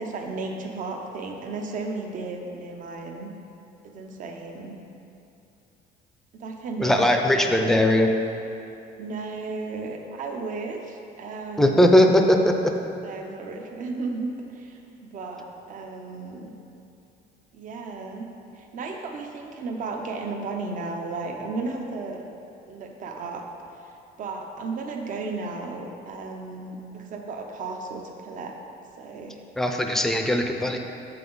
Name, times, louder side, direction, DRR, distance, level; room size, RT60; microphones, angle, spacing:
voice 1, 0.0-3.3 3.8-4.8 6.3-7.8 9.0-12.1 13.0-16.5 17.5-18.3 18.5-22.2 22.7-23.4 23.8-28.5 29.0-29.4, right 3 dB, 50° right, 3 dB, 0.7 m, -34 dB
voice 2, 6.8-8.1 11.6-12.5 29.6-30.8, left 1 dB, ahead, 3 dB, 0.5 m, -19 dB
7.5 x 5.8 x 3.9 m, 2.8 s
cardioid pair, 130°, 17 cm